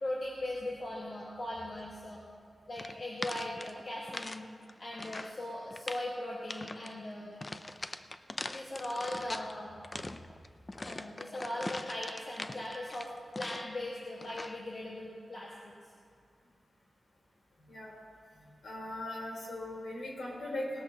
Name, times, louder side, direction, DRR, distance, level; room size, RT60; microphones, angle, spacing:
voice 1, 0.0-2.2 2.7-4.5 4.8-7.4 8.4-9.8 10.8-13.1 13.4-15.7 18.4-18.5, left 1 dB, 45° left, -5 dB, 1.5 m, -39 dB
sound 1, 2.8-4.4 4.7-5.4 5.7-6.1 6.5-6.9 7.4-9.5 9.8-13.8 14.2-14.6, left 2 dB, 25° left, 0.4 m, -42 dB
voice 2, 18.6-20.8, left 1 dB, 70° left, -3 dB, 3.7 m, -39 dB
19.0 x 13.5 x 2.9 m, 2.2 s
wide cardioid pair, 155°, 0 cm